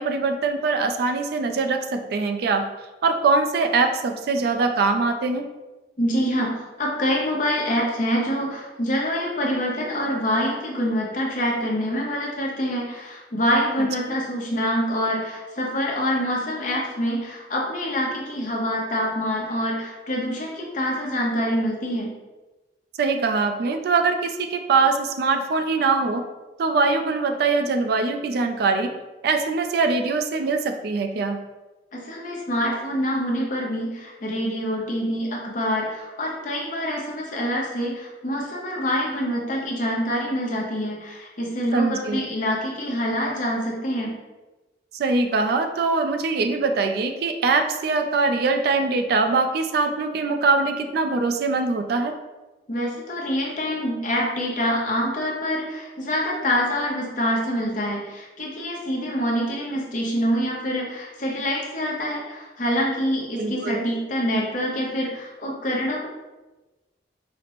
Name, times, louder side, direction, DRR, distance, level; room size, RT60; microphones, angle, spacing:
voice 1, 0.0-2.7 3.0-5.5 23.0-26.3 26.6-28.9 29.2-31.4 41.7-42.2 45.0-52.1 63.4-63.9, right 4 dB, 60° right, 6 dB, 0.3 m, -22 dB
voice 2, 6.0-22.1 31.9-44.1 52.7-66.1, equal, 45° left, -2 dB, 0.7 m, -26 dB
4.9 x 2.0 x 2.9 m, 1.1 s
head